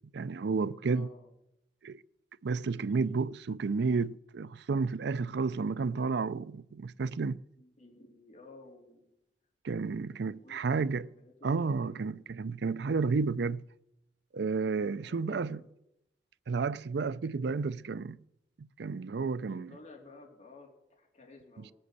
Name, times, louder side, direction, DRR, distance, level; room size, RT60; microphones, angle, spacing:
voice 1, 0.1-1.1 1.8-2.0 2.4-7.4 9.6-11.1 11.4-13.6 14.3-15.6 16.5-18.2 18.6-19.7, right 4 dB, 70° right, 0.5 m, -31 dB
voice 2, 0.8-1.3 7.6-9.1 10.0-12.0 15.0-15.6 19.5-21.7, left 3 dB, 40° left, 3.2 m, -54 dB
19.0 x 7.8 x 8.1 m
head